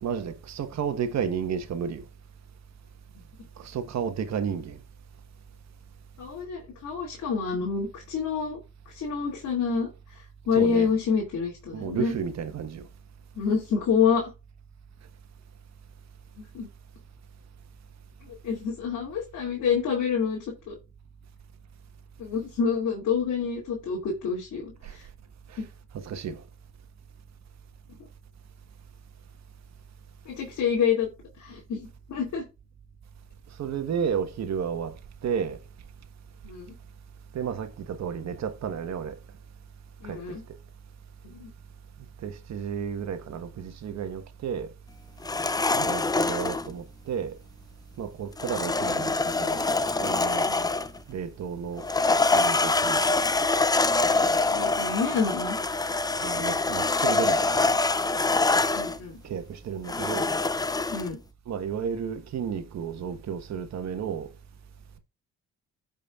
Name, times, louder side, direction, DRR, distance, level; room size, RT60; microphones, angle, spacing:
voice 1, 0.0-2.0 3.6-4.8 10.5-10.9 11.7-12.8 24.8-24.9 25.5-25.6 25.9-26.4 33.6-34.9 35.2-35.6 37.3-39.2 40.0-40.2 42.2-44.7 45.7-47.4 48.0-49.7 50.0-50.5 51.1-51.8 52.3-53.0 56.2-57.6 59.2-60.3 61.5-64.3, right 7 dB, 60° right, 1.4 m, -32 dB
voice 2, 6.2-8.6 8.9-9.9 10.5-12.1 13.4-14.3 16.4-16.7 18.3-20.4 20.7-20.8 22.2-25.0 30.3-31.1 31.4-32.4 36.4-36.7 40.0-40.4 41.3-41.5 45.6-45.8 50.5-50.7 54.5-55.6 58.7-59.1 60.9-61.2, left 6 dB, 70° left, 2.6 m, -27 dB
sound 1, 45.2-46.7 48.4-51.0 51.8-59.0 59.9-61.1, left 3 dB, 15° left, 0.5 m, -25 dB
16.0 x 5.4 x 2.4 m
cardioid pair, 90°, 30 cm